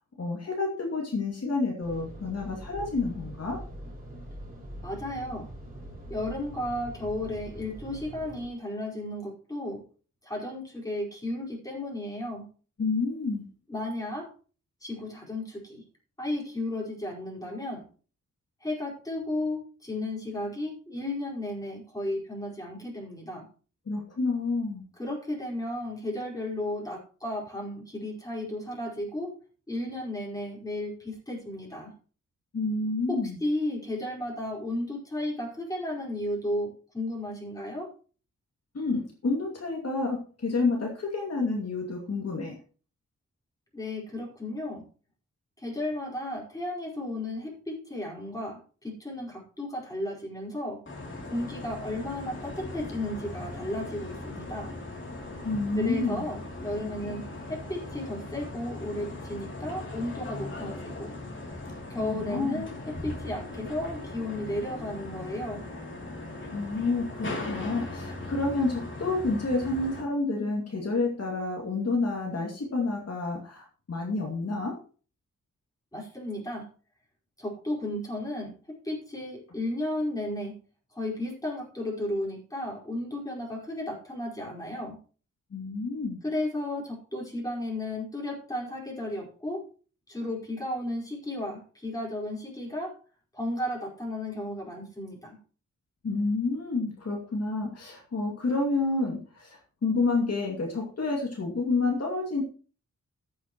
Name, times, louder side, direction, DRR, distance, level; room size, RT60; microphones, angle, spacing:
voice 1, 0.2-3.6 12.8-13.5 23.9-24.8 32.5-33.4 38.7-42.5 55.4-56.2 62.0-62.6 66.5-74.7 85.5-86.2 96.0-102.4, left 3 dB, 55° left, -1 dB, 2.5 m, -29 dB
Car Wash, 1.8-8.5, right 1 dB, 30° right, 4.9 m, -43 dB
voice 2, 4.8-5.5 6.1-9.8 10.2-12.4 13.7-14.3 14.8-15.8 16.2-17.9 18.6-23.5 25.0-29.4 29.7-31.9 33.1-37.9 43.7-44.8 45.6-50.8 51.3-54.7 55.8-57.2 57.5-61.1 61.9-65.6 75.9-76.7 77.4-78.5 78.8-80.6 80.9-85.0 86.2-89.6 90.1-92.9 93.3-95.4, left 1 dB, 10° left, -3 dB, 4.9 m, -34 dB
sound 1, 50.9-70.0, left 2 dB, 40° left, 3.1 m, -39 dB
14.5 x 8.4 x 3.1 m, 0.39 s
wide cardioid pair, 100°, 30 cm